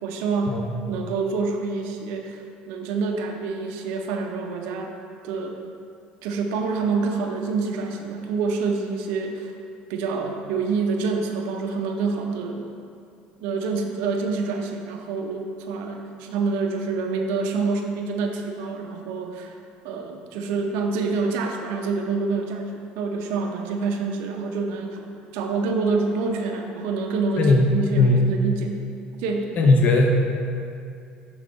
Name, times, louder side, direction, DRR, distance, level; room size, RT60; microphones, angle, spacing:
voice 1, 0.0-0.6 0.9-4.9 5.2-5.6 6.2-9.5 9.9-12.6 13.4-19.5 19.8-25.1 25.3-28.8 29.2-29.5, right 4 dB, 80° right, 2 dB, 0.6 m, -27 dB
voice 2, 27.4-27.7 28.0-28.2 29.6-30.1, left 3 dB, 45° left, 2 dB, 0.8 m, -17 dB
6.1 x 3.7 x 5.1 m, 2.4 s
supercardioid pair, 95°, 4 cm